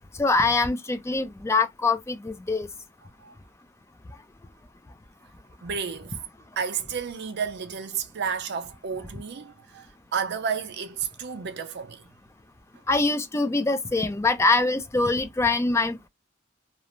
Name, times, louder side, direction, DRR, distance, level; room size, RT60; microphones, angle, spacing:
voice 1, 0.2-2.7 12.9-16.1, left 3 dB, 15° left, 0.3 m, -24 dB
voice 2, 5.6-6.2 6.6-12.1, right 6 dB, 55° right, 0.5 m, -31 dB
2.5 x 2.0 x 2.9 m
head